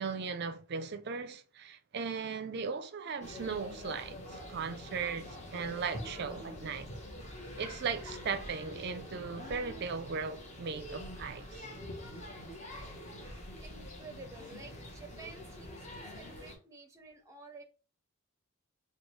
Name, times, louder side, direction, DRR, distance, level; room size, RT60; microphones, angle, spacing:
voice 1, 0.0-6.9 7.6-11.7, right 5 dB, 50° right, 0.4 m, -37 dB
sound 1, 3.2-16.6, left 1 dB, 30° left, 0.9 m, -45 dB
voice 2, 13.6-17.6, right 3 dB, 15° right, 0.6 m, -51 dB
4.6 x 2.3 x 3.1 m
head